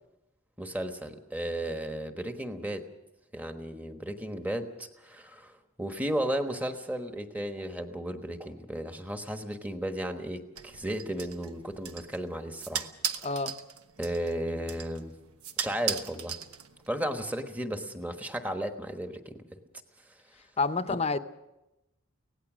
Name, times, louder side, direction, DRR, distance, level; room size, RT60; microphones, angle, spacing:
voice 1, 0.6-2.9 3.3-12.9 13.2-13.3 14.0-15.1 15.6-16.4 16.9-19.4 20.9-21.0, right 1 dB, 5° right, 6 dB, 1.2 m, -34 dB
sound 1, 10.6-17.0, right 8 dB, 90° right, 1.1 m, -38 dB
voice 2, 13.2-13.5 20.6-21.2, left 3 dB, 30° left, 11 dB, 0.8 m, -28 dB
24.5 x 18.0 x 6.2 m, 0.95 s
head